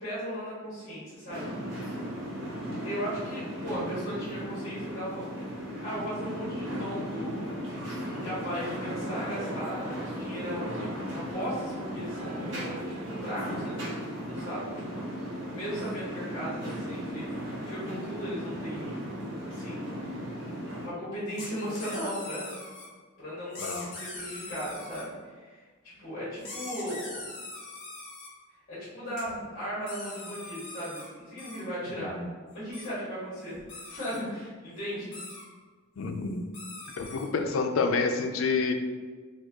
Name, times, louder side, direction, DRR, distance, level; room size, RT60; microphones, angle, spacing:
voice 1, 0.0-1.5 2.8-5.3 5.8-7.5 8.1-13.8 14.2-15.1 15.5-17.3 17.7-19.1 19.4-20.3 20.8-22.6 23.2-25.5 25.8-27.3 28.7-32.2 32.5-33.5 33.9-35.1 36.9-37.1, equal, 40° left, -11 dB, 1.4 m, -37 dB
sound 1, 1.3-20.9, equal, 70° right, 0.9 m, -36 dB
sound 2, 8.2-13.2, right 2 dB, 25° right, 0.5 m, -45 dB
sound 3, 21.3-22.9 23.5-25.0 26.4-28.3 29.2-29.3 29.9-31.1 31.4-31.6 32.7-32.9 33.5-34.2 35.1-35.5 36.2-36.3 36.5-37.3, left 2 dB, 65° left, 1.2 m, -42 dB
voice 2, 23.6-23.9 32.1-32.3 36.0-36.5 37.0-38.7, left 4 dB, 80° left, 6 dB, 0.4 m, -28 dB
4.3 x 2.2 x 2.8 m, 1.4 s
head